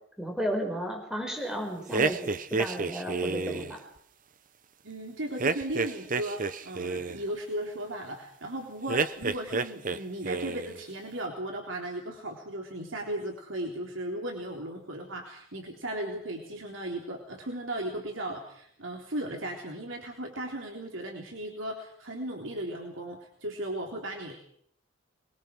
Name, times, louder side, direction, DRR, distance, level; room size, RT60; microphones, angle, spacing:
voice 1, 0.2-2.2 2.5-3.8, equal, 5° right, 1 dB, 5.6 m, -33 dB
sound 1, 1.9-3.8 5.4-7.2 8.9-10.0 10.2-10.8, right 4 dB, 45° right, 1.0 m, -29 dB
voice 2, 4.8-24.4, right 1 dB, 90° right, 1 dB, 3.7 m, -36 dB
24.5 x 21.5 x 6.3 m, 0.67 s
head